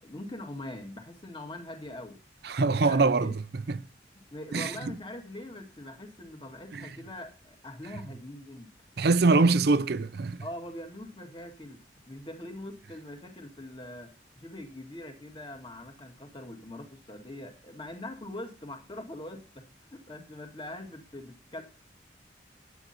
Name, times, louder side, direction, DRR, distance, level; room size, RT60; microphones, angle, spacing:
voice 1, 0.0-2.2 2.7-3.4 4.3-8.7 9.2-9.6 10.4-14.1 14.4-21.6, left 1 dB, 25° left, 1.9 m, -43 dB
voice 2, 2.4-3.8 4.5-4.9 6.7-6.9 9.0-10.4, right 3 dB, 60° right, 0.6 m, -24 dB
10.5 x 9.1 x 4.3 m
head